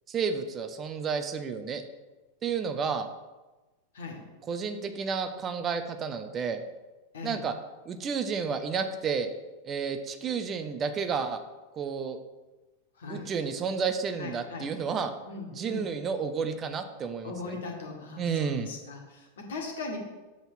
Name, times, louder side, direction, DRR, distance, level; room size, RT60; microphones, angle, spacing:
voice 1, 0.1-1.8 2.4-3.1 4.5-6.6 7.2-7.5 7.9-9.3 9.6-11.4 11.7-12.2 13.1-15.1 15.5-17.6 18.2-18.7, right 6 dB, 25° right, 8 dB, 0.6 m, -31 dB
voice 2, 3.9-4.2 7.1-7.4 12.9-13.3 14.2-14.7 15.3-15.9 17.2-20.0, left 3 dB, 60° left, 2 dB, 1.6 m, -39 dB
7.1 x 3.9 x 6.0 m, 1.1 s
figure-of-eight pair, 90°, 0 cm